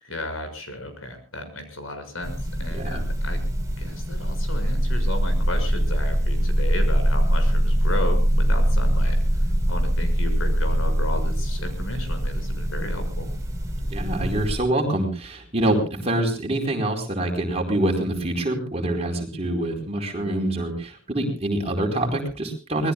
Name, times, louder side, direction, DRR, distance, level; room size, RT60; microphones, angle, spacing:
voice 1, 0.0-3.4 3.8-9.2 9.7-13.3, left 1 dB, 85° left, 7 dB, 6.4 m, -34 dB
sound 1, 2.2-14.6, equal, 15° right, 4.3 m, -23 dB
voice 2, 2.7-3.0 13.9-22.9, right 1 dB, 30° right, 2 dB, 4.5 m, -25 dB
26.0 x 20.0 x 2.4 m, 0.34 s
head